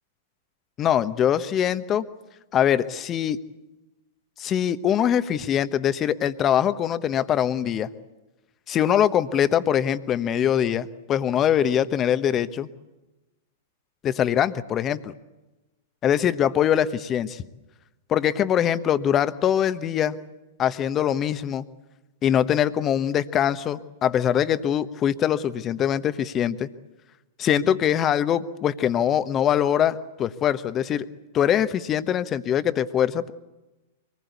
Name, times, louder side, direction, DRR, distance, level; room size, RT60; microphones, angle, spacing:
voice 1, 0.8-2.0 2.5-3.4 4.4-7.9 8.7-12.7 14.0-15.1 16.0-17.4 18.1-20.2 20.6-21.6 22.2-26.7 27.4-31.1 31.3-33.3, left 9 dB, 30° left, 13 dB, 1.1 m, -23 dB
24.5 x 20.0 x 8.3 m, 1.1 s
figure-of-eight pair, 105°, 0 cm